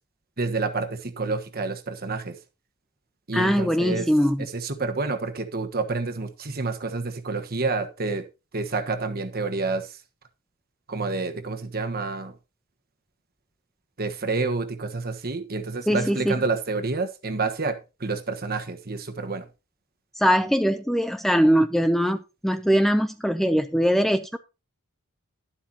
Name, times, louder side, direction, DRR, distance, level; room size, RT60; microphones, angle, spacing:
voice 1, 0.4-2.3 3.3-4.1 4.5-8.2 8.5-9.9 10.9-12.3 14.0-19.4, right 3 dB, 45° right, 1.3 m, -28 dB
voice 2, 3.3-4.5 15.9-16.4 20.2-24.4, equal, ahead, 0.5 m, -22 dB
11.5 x 11.5 x 2.8 m
head